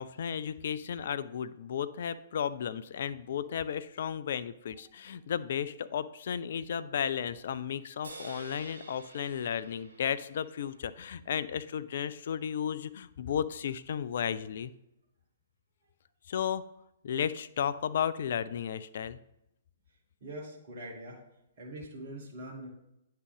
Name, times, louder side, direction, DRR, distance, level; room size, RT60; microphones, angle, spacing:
voice 1, 0.0-14.7 16.3-16.6 17.0-19.2, left 8 dB, 60° left, 15 dB, 0.3 m, -34 dB
sound 1, 8.0-11.5, right 3 dB, 75° right, 1.5 m, -50 dB
voice 2, 20.2-21.2 21.6-22.7, right 1 dB, 50° right, -1 dB, 1.3 m, -43 dB
9.5 x 3.7 x 3.3 m, 0.86 s
figure-of-eight pair, 120°, 0 cm